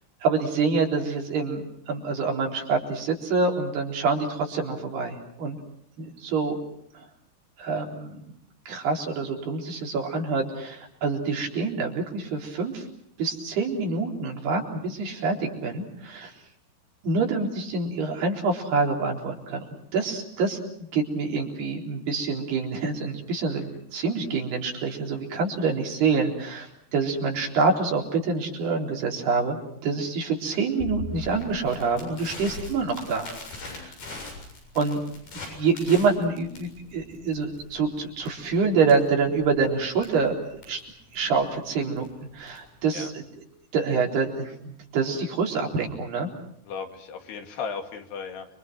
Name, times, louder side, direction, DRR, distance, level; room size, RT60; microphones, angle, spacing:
voice 1, 0.2-5.6 6.0-6.6 7.6-8.2 8.7-12.9 13.2-16.3 17.0-19.6 19.9-20.6 20.9-33.3 33.7-33.9 34.8-35.0 35.5-40.3 40.7-40.8 41.1-42.1 42.3-43.2 43.7-46.3, right 4 dB, 80° right, 1 dB, 6.0 m, -26 dB
Crackle, 30.8-42.8, left 2 dB, 70° left, 9.2 m, -41 dB
voice 2, 33.6-33.9 42.9-43.1 46.7-48.5, left 6 dB, 85° left, 5 dB, 4.4 m, -36 dB
29.5 x 24.5 x 6.2 m, 0.70 s
omnidirectional pair, 4.5 m